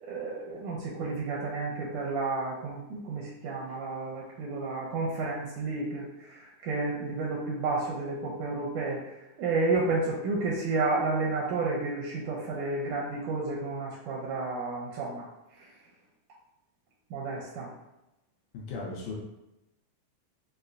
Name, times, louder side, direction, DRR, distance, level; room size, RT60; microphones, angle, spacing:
voice 1, 0.0-15.3 15.6-15.7 17.1-17.7, right 3 dB, 80° right, -3 dB, 1.8 m, -31 dB
voice 2, 18.5-19.1, left 3 dB, 75° left, -3 dB, 2.0 m, -36 dB
5.4 x 2.1 x 2.5 m, 0.94 s
omnidirectional pair, 3.7 m